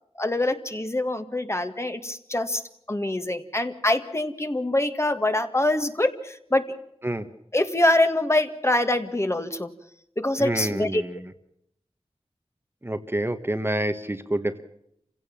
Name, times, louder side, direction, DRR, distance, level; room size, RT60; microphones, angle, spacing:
voice 1, 0.2-2.6 2.9-6.6 7.5-9.7 10.2-11.0, left 1 dB, 25° left, 7 dB, 1.9 m, -24 dB
voice 2, 10.4-11.2 12.8-14.6, right 1 dB, 20° right, 8 dB, 1.3 m, -28 dB
28.0 x 16.5 x 7.3 m, 0.74 s
wide cardioid pair, 70°, 11 cm